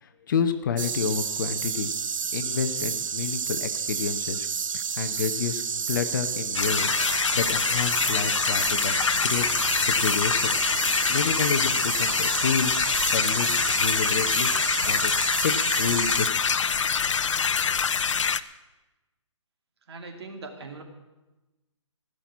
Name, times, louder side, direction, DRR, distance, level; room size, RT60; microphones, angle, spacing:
voice 1, 0.0-1.9 2.3-4.5 4.7-5.6 5.9-9.5 9.8-10.5 11.1-14.5 14.8-15.5 15.8-16.3, left 7 dB, 40° left, 9 dB, 0.9 m, -30 dB
sound 1, 0.8-16.3, right 7 dB, 80° right, 0.6 m, -30 dB
sound 2, 6.5-18.4, left 6 dB, 70° left, 0.7 m, -25 dB
voice 2, 19.9-20.8, right 3 dB, 55° right, 3 dB, 2.6 m, -40 dB
16.0 x 6.2 x 9.6 m, 1.1 s
hypercardioid pair, 160°, 17 cm